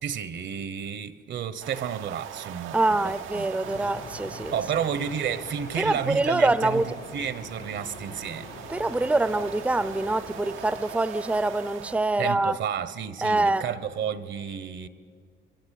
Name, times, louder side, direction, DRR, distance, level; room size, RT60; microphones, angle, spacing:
voice 1, 0.0-3.5 4.5-6.8 7.1-8.5 12.2-14.9, right 8 dB, 65° right, 1.1 m, -31 dB
sound 1, 1.6-12.1, right 10 dB, 85° right, 0.9 m, -42 dB
voice 2, 2.7-4.5 5.7-6.9 8.7-12.6 13.2-13.7, right 2 dB, 5° right, 0.6 m, -25 dB
sound 2, 3.6-11.0, left 5 dB, 50° left, 1.1 m, -44 dB
26.5 x 22.5 x 8.4 m
cardioid pair, 90°, 20 cm